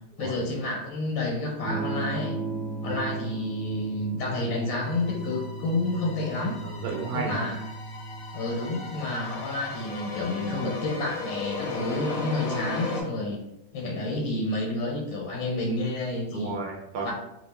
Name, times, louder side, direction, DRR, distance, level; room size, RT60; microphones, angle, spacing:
voice 1, 0.2-2.4 2.8-6.6 7.1-7.6 8.3-13.4 13.7-16.6 17.0-17.1, left 2 dB, 85° left, -2 dB, 1.4 m, -30 dB
Electric guitar / Strum, 1.6-11.4, right 3 dB, 30° right, 0.8 m, -36 dB
sound 1, 4.8-13.0, left 3 dB, 65° left, 0.9 m, -37 dB
voice 2, 6.6-7.5 16.3-17.1, right 4 dB, 70° right, -1 dB, 0.9 m, -33 dB
3.0 x 2.4 x 3.4 m, 0.87 s
omnidirectional pair, 2.0 m